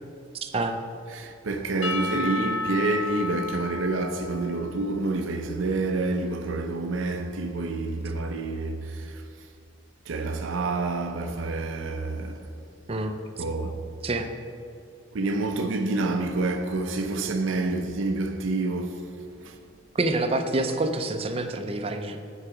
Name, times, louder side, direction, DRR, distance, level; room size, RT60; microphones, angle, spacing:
voice 1, 0.4-0.8 12.9-13.4 14.0-14.3 19.9-22.2, right 2 dB, 30° right, 0.5 m, -27 dB
voice 2, 1.1-9.2 10.1-12.4 13.4-13.8 15.1-19.0 19.4-19.6, right 2 dB, 80° right, 0.5 m, -28 dB
Percussion / Church bell, 1.8-6.2, left 2 dB, 85° left, 0.6 m, -33 dB
9.8 x 4.7 x 4.9 m
head